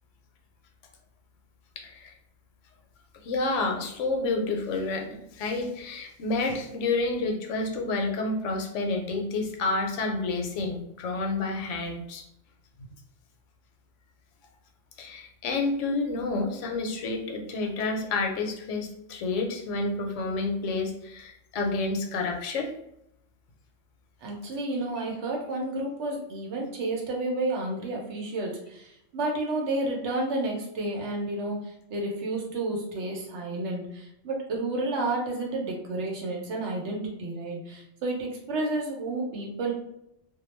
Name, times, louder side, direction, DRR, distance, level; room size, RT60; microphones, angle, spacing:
voice 1, 1.8-2.1 3.2-5.1 5.3-12.2 12.8-12.9 15.0-22.7, left 3 dB, 75° left, 2 dB, 0.9 m, -29 dB
voice 2, 24.2-31.6 31.9-39.7, right 2 dB, 70° right, 0 dB, 0.9 m, -31 dB
2.3 x 2.1 x 3.1 m, 0.79 s
omnidirectional pair, 1.3 m